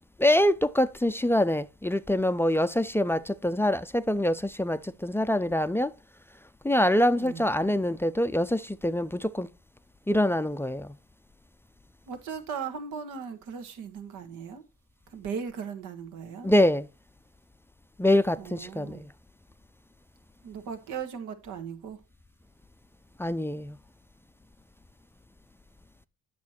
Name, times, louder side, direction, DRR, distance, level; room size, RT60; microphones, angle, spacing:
voice 1, 0.2-5.9 6.6-9.5 10.1-10.9 16.4-16.9 18.0-19.1 23.2-23.8, left 1 dB, 10° left, 0.4 m, -25 dB
voice 2, 12.1-14.6 15.1-16.5 18.4-19.0 20.4-22.0, right 6 dB, 85° right, 1.5 m, -37 dB
8.4 x 6.2 x 4.3 m
cardioid pair, 90°, 30 cm